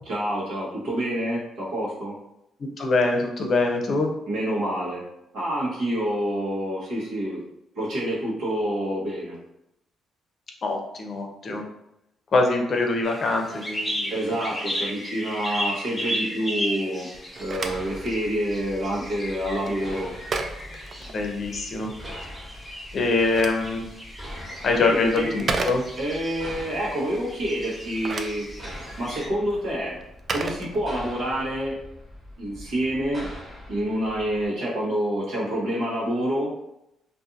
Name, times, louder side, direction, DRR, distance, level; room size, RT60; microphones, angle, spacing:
voice 1, 0.1-2.2 4.3-5.0 5.3-7.4 7.7-9.4 14.1-17.1 17.4-20.1 24.8-25.3 26.0-28.5 29.0-30.0 30.3-31.8 32.4-33.3 33.7-36.5, equal, 80° right, -6 dB, 1.1 m, -27 dB
voice 2, 2.6-4.1 10.6-11.6 12.3-14.4 21.1-21.9 22.9-23.8 24.6-25.8, left 3 dB, 50° left, 2 dB, 0.6 m, -24 dB
sound 1, 13.0-29.3, equal, 5° left, 1.0 m, -35 dB
Telephone, 17.1-21.7 22.9-26.3 27.7-31.3, right 3 dB, 45° right, 0.3 m, -35 dB
sound 2, 17.4-34.5, equal, 30° right, 1.2 m, -43 dB
2.5 x 2.5 x 2.5 m, 0.84 s
cardioid pair, 90°, 0 cm